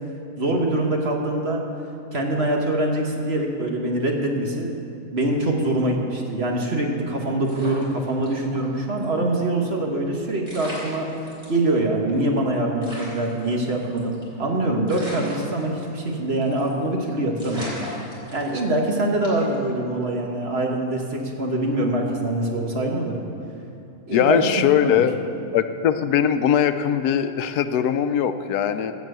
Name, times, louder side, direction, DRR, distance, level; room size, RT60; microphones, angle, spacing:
voice 1, 0.4-1.6 2.1-4.7 5.1-11.1 11.5-17.7 18.3-23.2 24.1-25.0, right 1 dB, 45° right, 1 dB, 1.5 m, -24 dB
sound 1, 7.4-8.6 9.0-9.1 10.1-10.2 10.4-11.6 12.1-12.2 12.4-12.5 12.8-14.4 14.9-16.1 16.4-16.7 17.0-17.1 17.4-18.8 19.2-19.5, left 1 dB, 25° right, 3.9 m, -37 dB
voice 2, 24.1-25.2 25.5-28.9, left 9 dB, 85° left, 10 dB, 1.2 m, -21 dB
16.0 x 6.1 x 7.9 m, 2.7 s
omnidirectional pair, 1.6 m